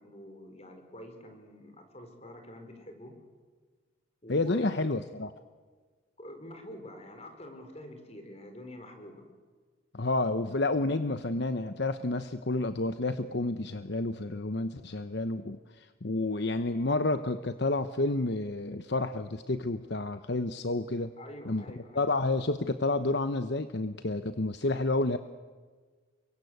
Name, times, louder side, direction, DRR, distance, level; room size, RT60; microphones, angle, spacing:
voice 1, 0.0-3.1 4.2-4.7 6.2-9.2 21.2-22.1, left 1 dB, 30° left, 6 dB, 4.6 m, -46 dB
voice 2, 4.3-5.3 9.9-21.1 21.4-21.6 21.9-25.2, left 2 dB, 55° left, 10 dB, 0.9 m, -30 dB
29.5 x 24.0 x 8.1 m, 1.5 s
head